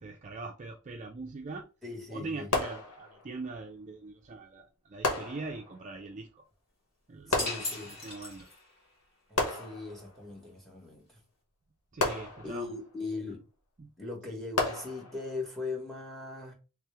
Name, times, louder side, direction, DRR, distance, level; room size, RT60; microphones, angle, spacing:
voice 1, 0.0-1.7 2.1-6.4 7.1-8.5 11.9-12.7 13.8-13.9 14.3-14.4, right 3 dB, 35° right, 0.5 m, -42 dB
voice 2, 1.8-2.5 7.3-8.0 9.3-11.2 12.4-13.4 14.0-16.5, left 3 dB, ahead, 1.4 m, -39 dB
sound 1, 2.5-3.4 5.0-5.9 7.3-8.2 9.4-10.3 12.0-12.9 14.6-15.4, left 2 dB, 90° left, 1.0 m, -33 dB
sound 2, 7.4-8.9, left 2 dB, 45° left, 2.0 m, -37 dB
3.3 x 3.1 x 3.4 m
head